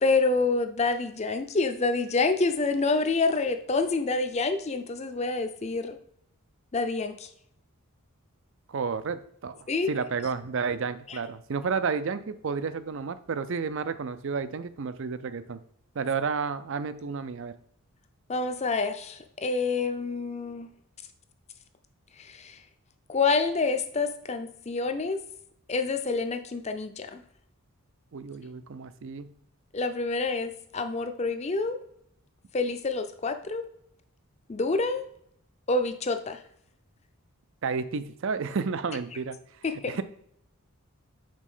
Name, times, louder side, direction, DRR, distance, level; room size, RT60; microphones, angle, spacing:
voice 1, 0.0-6.0 6.7-7.3 9.7-9.9 11.1-11.2 18.3-20.7 22.2-22.6 23.1-25.2 25.7-27.2 29.7-31.8 32.5-33.7 34.5-35.0 35.7-36.4 39.6-40.0, left 3 dB, 30° left, 8 dB, 0.5 m, -27 dB
voice 2, 8.7-15.6 16.0-17.5 28.1-29.3 37.6-39.4 39.9-40.0, right 5 dB, 55° right, 13 dB, 0.4 m, -31 dB
5.2 x 4.1 x 5.5 m, 0.72 s
head